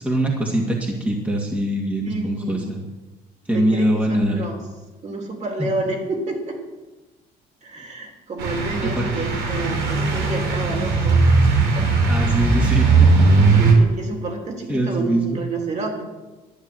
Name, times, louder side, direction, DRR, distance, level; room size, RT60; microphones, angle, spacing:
voice 1, 0.0-2.8 3.5-4.4 5.6-5.7 8.8-9.1 12.1-13.5 14.7-15.4, right 1 dB, 10° right, -1 dB, 2.2 m, -23 dB
voice 2, 2.0-2.7 3.5-4.6 5.0-6.6 7.6-11.3 11.7-11.9 13.1-13.2 13.6-16.0, right 3 dB, 45° right, 2 dB, 3.4 m, -29 dB
sound 1, 8.4-13.7, right 3 dB, 80° right, 3.2 m, -18 dB
12.0 x 9.2 x 7.7 m, 1.2 s
cardioid pair, 110°, 17 cm